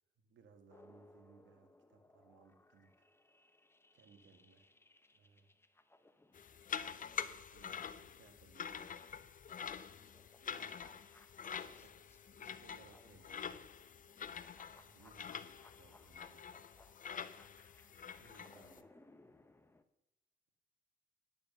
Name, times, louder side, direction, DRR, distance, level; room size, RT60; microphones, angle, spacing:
voice 1, 0.2-3.1 3.9-4.7 5.1-5.5 7.0-8.9 10.4-10.9 11.4-13.7 14.7-16.4 18.2-19.0, right 5 dB, 70° right, 6 dB, 1.8 m, -65 dB
sound 1, 0.7-8.6 9.0-19.8, left 2 dB, 10° left, 0.8 m, -66 dB
sound 2, 6.3-18.8, left 7 dB, 45° left, 0.7 m, -46 dB
10.0 x 7.1 x 6.8 m, 0.90 s
cardioid pair, 90°, 20 cm